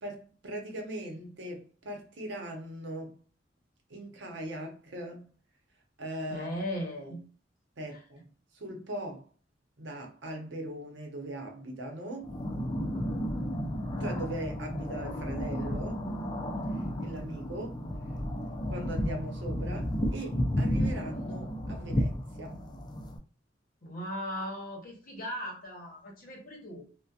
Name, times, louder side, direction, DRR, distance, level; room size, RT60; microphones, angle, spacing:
voice 1, 0.0-3.1 3.9-5.3 6.0-6.5 7.8-8.3 8.5-9.2 9.8-12.3 14.0-16.0 17.0-17.8 18.7-22.1 22.4-22.6, right 1 dB, 75° right, 0.7 m, -39 dB
voice 2, 6.3-7.2 7.9-8.0 23.8-26.8, equal, 50° left, 0.9 m, -37 dB
sound 1, 12.2-23.2, equal, 25° left, 0.4 m, -32 dB
2.7 x 2.1 x 2.3 m
head